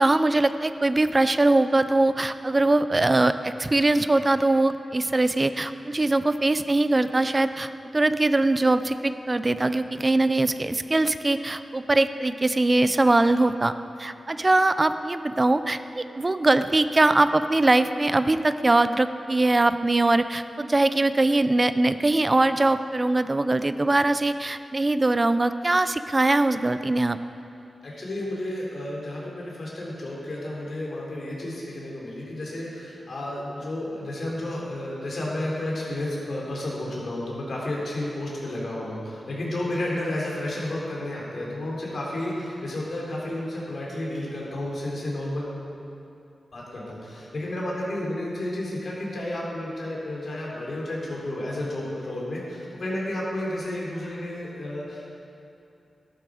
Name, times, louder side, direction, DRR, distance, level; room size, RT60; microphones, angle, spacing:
voice 1, 0.0-13.7 14.0-27.2, right 2 dB, 25° right, 11 dB, 0.4 m, -22 dB
voice 2, 27.8-45.5 46.5-55.1, left 1 dB, 55° left, -4 dB, 3.4 m, -31 dB
13.5 x 11.5 x 4.9 m, 2.7 s
wide cardioid pair, 155°, 0 cm